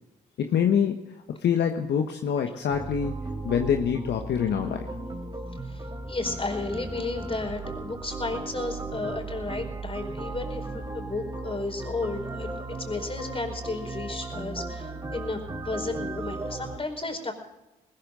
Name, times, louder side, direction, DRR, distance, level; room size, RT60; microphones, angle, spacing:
voice 1, 0.4-3.2 3.4-4.9, left 8 dB, 60° left, 5 dB, 1.3 m, -25 dB
sound 1, 2.7-16.8, right 3 dB, 20° right, 3.4 m, -36 dB
voice 2, 5.6-15.4 15.6-17.3, left 3 dB, 30° left, 4 dB, 4.8 m, -33 dB
20.5 x 14.0 x 3.9 m, 0.94 s
hypercardioid pair, 45°, 20 cm